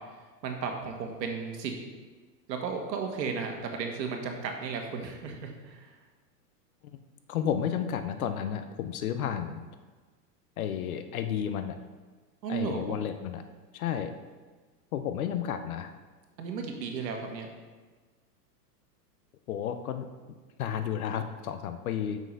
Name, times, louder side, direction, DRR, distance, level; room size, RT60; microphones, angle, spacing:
voice 1, 0.4-1.7 2.5-5.9 12.4-13.0 16.4-17.5, right 5 dB, 85° right, 3 dB, 1.6 m, -34 dB
voice 2, 7.3-9.7 10.6-11.8 12.5-13.4 13.7-14.1 14.9-15.9 19.5-20.1 20.6-22.2, left 9 dB, 60° left, 9 dB, 0.6 m, -32 dB
6.0 x 5.6 x 5.4 m, 1.4 s
supercardioid pair, 165°, 49 cm